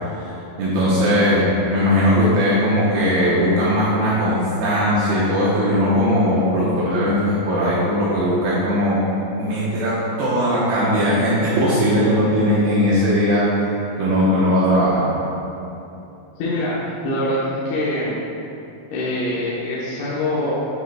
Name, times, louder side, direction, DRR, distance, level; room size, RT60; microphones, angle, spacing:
voice 1, 0.6-9.0 9.4-13.5 14.0-15.1, equal, 75° right, -9 dB, 2.5 m, -19 dB
voice 2, 16.4-18.1 18.9-20.5, left 1 dB, 75° left, -9 dB, 3.1 m, -24 dB
9.3 x 7.1 x 2.2 m, 2.9 s
omnidirectional pair, 5.9 m